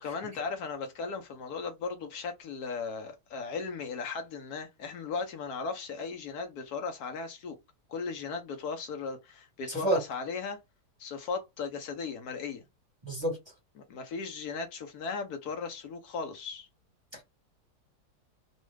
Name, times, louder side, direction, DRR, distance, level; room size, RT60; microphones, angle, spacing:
voice 1, 0.0-7.6 7.9-10.6 11.0-12.6 13.9-16.7, left 5 dB, 70° left, 1.2 m, -37 dB
voice 2, 9.7-10.0 13.0-13.4 17.1-17.2, right 1 dB, 20° right, 1.1 m, -29 dB
3.1 x 2.3 x 3.2 m
omnidirectional pair, 1.7 m